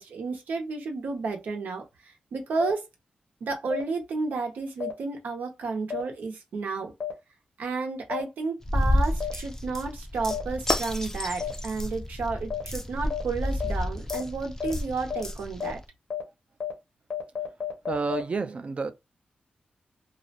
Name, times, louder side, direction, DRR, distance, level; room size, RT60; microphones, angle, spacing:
voice 1, 0.0-2.9 3.4-6.9 7.6-15.8, right 4 dB, 85° right, 0.7 m, -32 dB
sound 1, 2.6-2.7 3.7-3.8 4.8-4.9 5.9-6.0 7.0-7.1 8.1-8.2 9.2-9.3 10.3-10.4 11.4-11.5 12.5-12.6 13.1-13.2 13.6-13.7 14.1-14.2 14.6-14.7 15.1-15.2 15.6-15.7 16.1-16.2 16.6-16.7 17.1-18.2, left 8 dB, 60° left, 0.8 m, -31 dB
sound 2, 8.6-15.8, left 1 dB, 15° left, 0.4 m, -30 dB
voice 2, 17.9-18.9, right 4 dB, 45° right, 0.4 m, -29 dB
2.4 x 2.1 x 2.8 m
wide cardioid pair, 90°, 3 cm